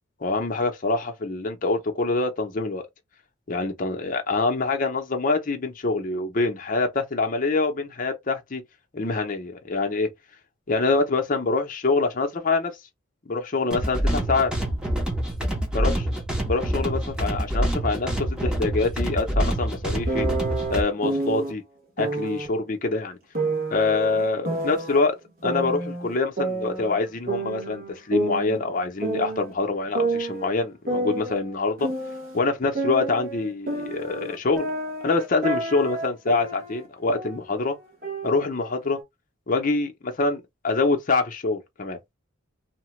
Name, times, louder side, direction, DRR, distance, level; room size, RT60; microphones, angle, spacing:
voice 1, 0.2-2.9 3.5-8.6 8.9-10.1 10.7-12.8 13.3-14.5 15.7-16.0 16.4-20.3 20.7-21.6 22.0-23.2 23.7-25.2 25.4-31.9 32.3-34.7 35.0-37.8 38.2-39.0 39.5-42.0, left 3 dB, 40° left, 0.6 m, -25 dB
sound 1, 13.7-20.8, right 1 dB, 5° right, 0.7 m, -26 dB
sound 2, 20.1-21.5 22.0-22.5 23.3-25.0 25.4-27.0 27.3-29.5 29.9-32.4 32.7-36.9 37.1-37.5 38.0-39.0, right 2 dB, 45° right, 1.1 m, -29 dB
2.8 x 2.2 x 3.1 m
head